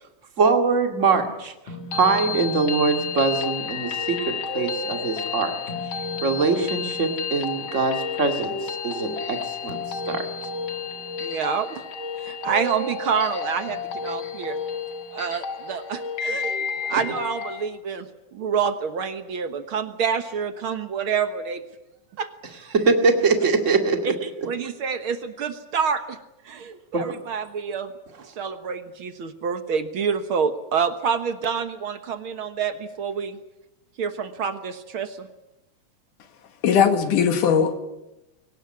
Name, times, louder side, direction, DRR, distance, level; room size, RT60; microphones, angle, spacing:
voice 1, 0.4-1.5 1.9-4.2 4.5-5.5 6.2-10.2 22.7-24.3 24.6-24.7 26.9-27.0, right 4 dB, 25° right, 5 dB, 2.3 m, -22 dB
sound 1, 1.7-17.6, left 5 dB, 45° left, 2.2 m, -31 dB
voice 2, 11.2-11.8 12.2-14.6 15.1-18.1 18.3-21.6 22.2-22.3 24.0-24.1 24.4-26.2 26.5-27.9 28.4-33.4 34.0-35.3, right 6 dB, 55° right, 10 dB, 1.6 m, -27 dB
voice 3, 36.6-37.7, left 7 dB, 80° left, 8 dB, 3.2 m, -19 dB
23.0 x 19.0 x 9.7 m, 0.94 s
omnidirectional pair, 3.6 m